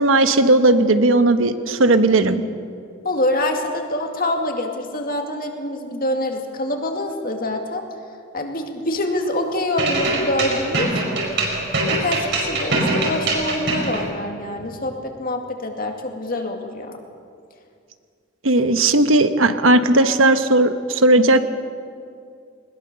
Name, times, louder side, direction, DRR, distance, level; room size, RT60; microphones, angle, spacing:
voice 1, 0.0-2.4 18.4-21.5, right 2 dB, 85° right, 10 dB, 1.1 m, -16 dB
voice 2, 3.0-7.8 8.3-11.0 11.9-17.0, left 1 dB, 45° left, 3 dB, 2.3 m, -25 dB
sound 1, 9.8-14.0, right 2 dB, 60° right, 5.0 m, -22 dB
20.5 x 20.0 x 6.8 m, 2.3 s
head